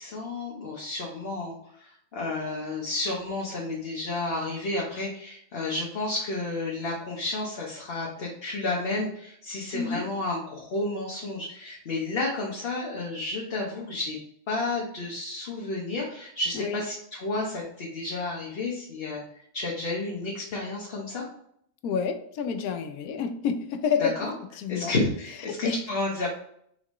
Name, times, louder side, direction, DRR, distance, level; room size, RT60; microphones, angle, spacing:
voice 1, 0.0-14.2 14.5-19.2 19.5-21.2 24.0-24.3 24.7-26.3, left 2 dB, 50° left, -3 dB, 1.0 m, -31 dB
voice 2, 9.7-10.1 16.5-16.8 21.8-24.1 24.6-24.9 25.5-25.8, left 6 dB, 90° left, 8 dB, 1.1 m, -29 dB
4.0 x 3.8 x 3.0 m, 0.68 s
omnidirectional pair, 1.5 m